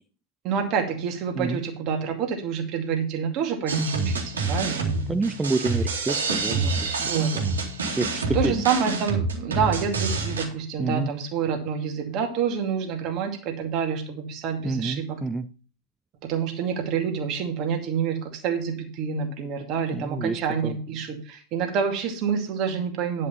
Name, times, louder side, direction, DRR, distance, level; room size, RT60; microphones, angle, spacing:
voice 1, 0.4-4.9 6.5-7.3 8.3-15.2 16.2-23.3, right 7 dB, 35° right, 3 dB, 2.3 m, -28 dB
sound 1, 3.7-10.4, right 3 dB, 70° right, 2.3 m, -27 dB
voice 2, 5.1-6.9 7.3-7.5 7.9-8.6 10.8-11.1 14.6-15.5 19.9-20.8, right 3 dB, 10° right, 14 dB, 0.6 m, -28 dB
10.5 x 5.4 x 5.6 m, 0.41 s
figure-of-eight pair, 90°, 0 cm